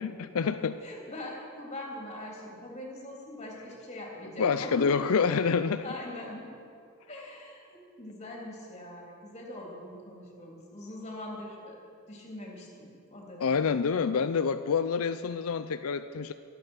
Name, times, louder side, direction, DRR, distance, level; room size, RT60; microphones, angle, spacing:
voice 1, 0.0-0.8 4.4-5.8 13.4-16.3, left 5 dB, 80° left, 11 dB, 0.5 m, -27 dB
voice 2, 0.8-4.9 5.8-6.5 7.1-13.7, left 1 dB, 30° left, -2 dB, 3.3 m, -42 dB
23.0 x 9.1 x 6.4 m, 2.4 s
head